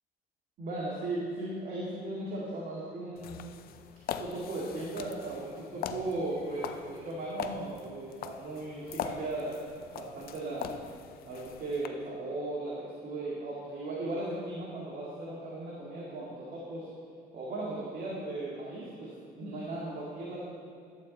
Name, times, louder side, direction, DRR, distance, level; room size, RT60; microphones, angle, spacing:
voice 1, 0.6-3.4 4.2-9.6 10.0-10.8 11.2-16.9 17.3-20.4, right 2 dB, 55° right, -6 dB, 2.1 m, -37 dB
sound 1, 3.2-11.9, left 9 dB, 60° left, 0.5 m, -42 dB
11.5 x 8.1 x 4.0 m, 2.4 s
cardioid pair, 110°, 17 cm